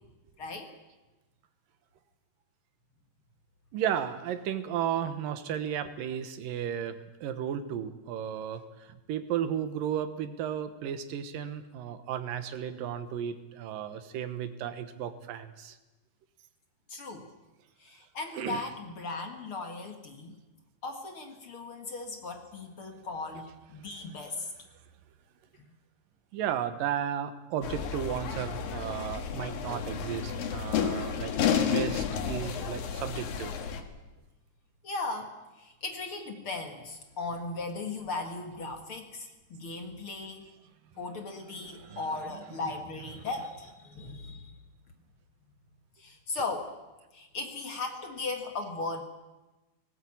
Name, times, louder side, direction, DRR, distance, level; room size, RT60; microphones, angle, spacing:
voice 1, 0.4-0.7 16.9-17.3 17.8-20.3 20.8-24.5 25.5-25.6 34.8-40.5 41.0-44.6 46.0-46.7 47.1-49.0, left 3 dB, 50° left, 4 dB, 2.0 m, -37 dB
voice 2, 3.7-15.8 18.4-18.6 26.3-33.5 41.7-42.0, right 9 dB, 85° right, 10 dB, 2.8 m, -34 dB
sound 1, 27.6-33.8, left 7 dB, 85° left, 3.3 m, -31 dB
19.0 x 17.5 x 8.7 m, 1.1 s
omnidirectional pair, 3.9 m